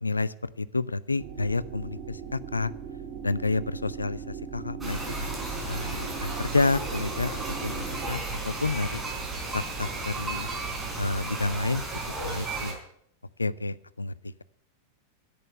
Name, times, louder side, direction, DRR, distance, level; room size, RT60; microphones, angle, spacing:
voice 1, 0.0-2.7 3.2-5.3 5.7-9.0 9.5-10.5 11.0-11.8 12.2-12.8 13.4-14.4, left 3 dB, 80° left, 18 dB, 0.4 m, -30 dB
sound 1, 1.2-8.1, right 8 dB, 40° right, 1.9 m, -40 dB
sound 2, 4.8-12.7, right 3 dB, 15° right, 3.9 m, -34 dB
10.5 x 8.7 x 9.1 m, 0.72 s
figure-of-eight pair, 90°, 0 cm